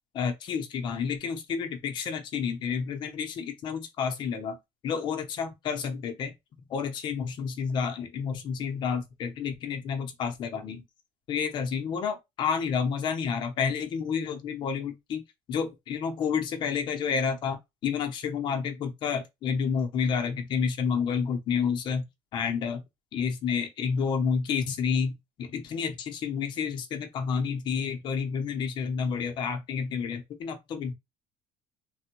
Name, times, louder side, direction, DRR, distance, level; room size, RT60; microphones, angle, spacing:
voice 1, 0.1-4.6 4.8-6.3 6.7-10.8 11.3-15.2 15.5-22.1 22.3-22.8 23.1-30.9, left 6 dB, 35° left, 0.6 m, -30 dB
3.3 x 2.1 x 2.9 m
cardioid pair, 180°, 13 cm